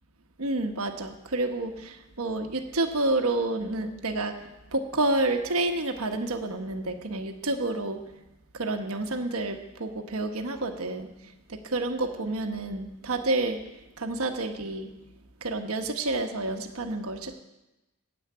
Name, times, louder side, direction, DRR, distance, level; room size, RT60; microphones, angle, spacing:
voice 1, 0.4-4.4 4.7-8.0 8.5-11.1 11.5-13.6 14.0-14.9 15.4-17.4, right 2 dB, 75° right, 5 dB, 1.2 m, -29 dB
9.8 x 7.9 x 8.6 m, 0.99 s
head